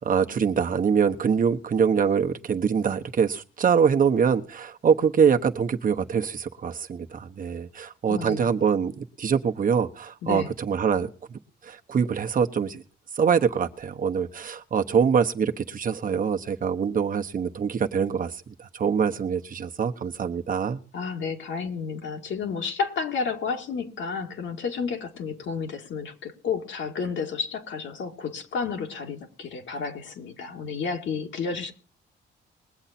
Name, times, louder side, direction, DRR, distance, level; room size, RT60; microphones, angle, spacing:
voice 1, 0.0-11.4 11.6-12.8 13.2-20.8, right 6 dB, 45° right, 1.1 m, -24 dB
voice 2, 8.1-8.5 10.2-10.5 20.9-31.7, left 5 dB, 70° left, 2.1 m, -31 dB
21.0 x 7.9 x 4.3 m
cardioid pair, 90°, 20 cm